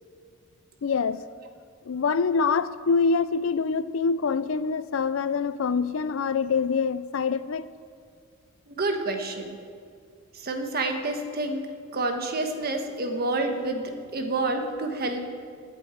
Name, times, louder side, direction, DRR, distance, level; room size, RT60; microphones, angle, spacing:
voice 1, 0.8-1.2 1.9-7.7, left 5 dB, 80° left, 0.4 m, -25 dB
voice 2, 8.7-9.6 10.3-11.6 11.9-15.3, right 2 dB, 50° right, 1.3 m, -28 dB
19.5 x 8.2 x 4.5 m
head